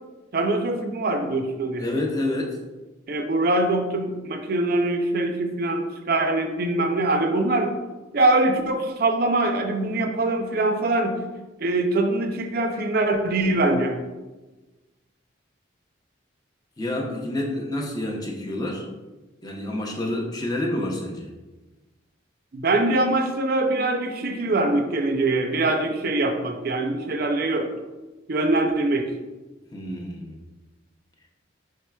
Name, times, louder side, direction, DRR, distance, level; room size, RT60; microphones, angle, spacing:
voice 1, 0.3-1.8 3.1-7.8 8.1-11.2 11.6-14.0 22.5-27.7 28.3-29.1, right 2 dB, 50° right, 5 dB, 0.5 m, -23 dB
voice 2, 1.8-2.6 16.8-18.8 19.4-21.3 29.7-30.4, left 1 dB, 20° left, 0 dB, 0.6 m, -28 dB
4.8 x 4.3 x 2.3 m, 1.2 s
head